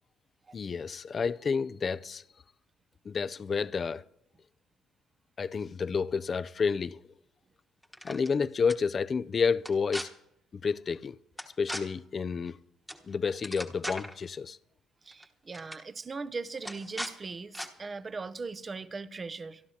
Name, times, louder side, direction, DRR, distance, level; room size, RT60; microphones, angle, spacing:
voice 1, 0.5-2.2 3.1-4.0 5.4-7.0 8.0-10.1 10.6-11.2 11.6-12.6 13.0-14.6, left 5 dB, 35° left, 0.4 m, -30 dB
sound 1, 7.8-8.3 8.7-8.8 9.6-10.0 11.4-11.8 12.9-13.0 13.3-14.1 15.1-15.2 15.5-15.8 16.6-17.1 17.5-17.7, equal, ahead, 1.2 m, -38 dB
voice 2, 15.0-19.6, right 4 dB, 25° right, 0.6 m, -39 dB
25.5 x 11.5 x 2.8 m
cardioid pair, 120°, 0 cm